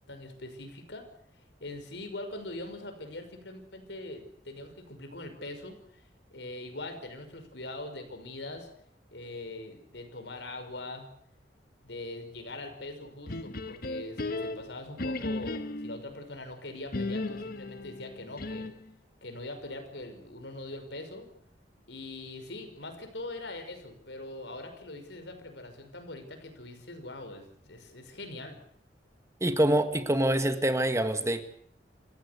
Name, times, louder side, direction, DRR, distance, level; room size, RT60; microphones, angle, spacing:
voice 1, 0.1-1.1 1.6-6.0 6.3-8.7 9.1-11.1 11.8-18.7 19.2-21.3 21.9-28.6, left 2 dB, 80° left, 7 dB, 5.5 m, -42 dB
sound 1, 13.3-16.1 16.9-18.9, left 2 dB, 55° left, 1.3 m, -35 dB
voice 2, 29.4-31.4, right 1 dB, 15° right, 8 dB, 1.7 m, -25 dB
27.5 x 15.5 x 8.3 m, 0.65 s
head